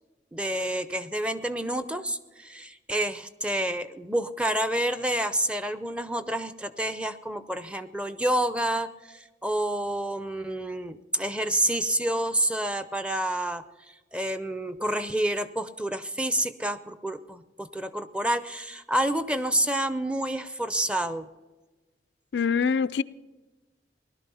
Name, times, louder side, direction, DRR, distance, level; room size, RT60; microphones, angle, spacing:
voice 1, 0.3-21.3, right 1 dB, 5° right, 0.6 m, -29 dB
voice 2, 22.3-23.0, left 6 dB, 80° left, 0.4 m, -24 dB
18.5 x 12.0 x 5.5 m
head